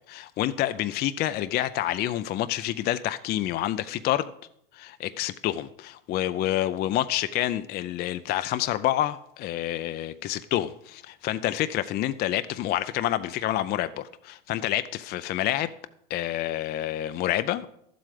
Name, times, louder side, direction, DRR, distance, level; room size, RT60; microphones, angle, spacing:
voice 1, 0.1-4.3 4.7-15.7 16.1-17.7, left 13 dB, 35° left, 12 dB, 0.4 m, -28 dB
11.5 x 7.7 x 4.9 m, 0.73 s
supercardioid pair, 110°, 29 cm